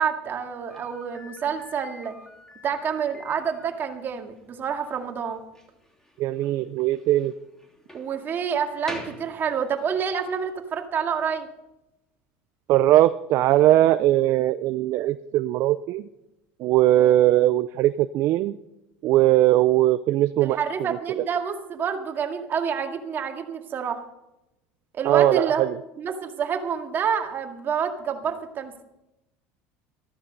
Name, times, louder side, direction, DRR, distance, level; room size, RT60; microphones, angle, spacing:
voice 1, 0.0-2.2 2.6-5.4 7.9-11.5 16.9-17.2 20.4-24.0 24.9-25.6 26.0-28.8, right 7 dB, 35° right, 4 dB, 2.1 m, -28 dB
Slam, 0.7-10.0, left 1 dB, 10° left, 3.0 m, -46 dB
voice 2, 6.2-7.4 12.7-16.1 16.6-18.6 19.0-20.6 25.0-25.7, right 14 dB, 55° right, 12 dB, 0.5 m, -20 dB
14.0 x 13.5 x 5.4 m, 0.91 s
supercardioid pair, 120°, 6 cm